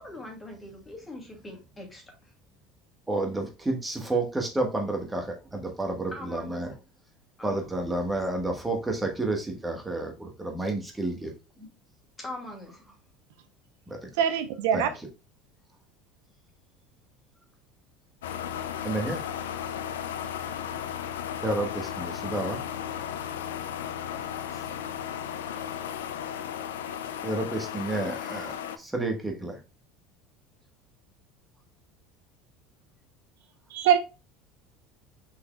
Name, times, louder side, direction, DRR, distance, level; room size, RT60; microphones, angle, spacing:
voice 1, 0.0-2.0 6.1-6.6 7.4-7.6 11.6-11.7 12.2-12.8 24.5-24.7, left 1 dB, 20° left, 2.3 m, -41 dB
voice 2, 3.1-6.7 7.4-11.3 13.9-14.1 14.7-15.1 18.8-19.2 21.4-22.6 27.2-29.6, right 2 dB, 15° right, 1.2 m, -30 dB
voice 3, 14.2-14.9 33.7-34.0, right 9 dB, 75° right, 0.6 m, -23 dB
sound 1, 18.2-28.8, left 9 dB, 80° left, 0.4 m, -35 dB
5.7 x 4.2 x 2.2 m
hypercardioid pair, 80°, 0 cm